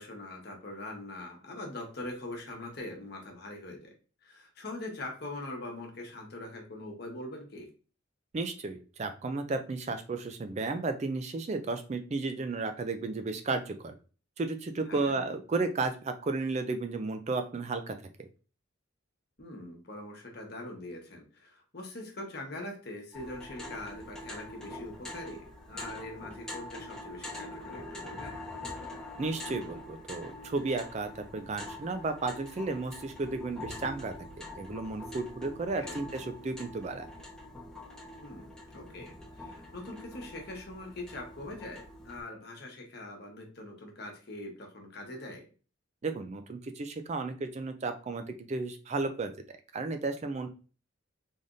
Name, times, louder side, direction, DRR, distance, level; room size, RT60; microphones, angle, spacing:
voice 1, 0.0-3.9 4.2-7.7 14.9-15.2 19.4-28.4 35.8-36.0 38.2-45.4, left 1 dB, 50° left, 1 dB, 1.1 m, -43 dB
voice 2, 8.3-13.9 14.4-18.3 29.2-37.1 46.0-49.3 49.7-50.5, right 3 dB, 30° right, 8 dB, 0.3 m, -33 dB
sound 1, 23.1-42.2, left 1 dB, 5° left, 0.9 m, -44 dB
3.9 x 3.4 x 2.5 m, 0.36 s
head